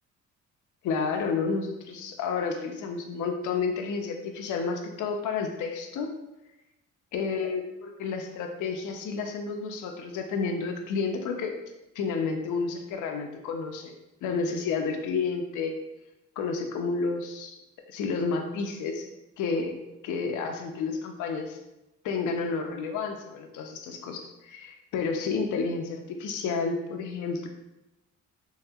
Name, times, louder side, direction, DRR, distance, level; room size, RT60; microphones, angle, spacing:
voice 1, 0.8-6.1 7.1-11.6 12.0-13.9 14.2-15.8 16.4-17.6 17.9-19.1 19.4-19.7 20.0-21.6 22.0-27.5, left 4 dB, 80° left, 4 dB, 0.5 m, -30 dB
3.1 x 2.8 x 2.3 m, 0.96 s
cardioid pair, 90°, 30 cm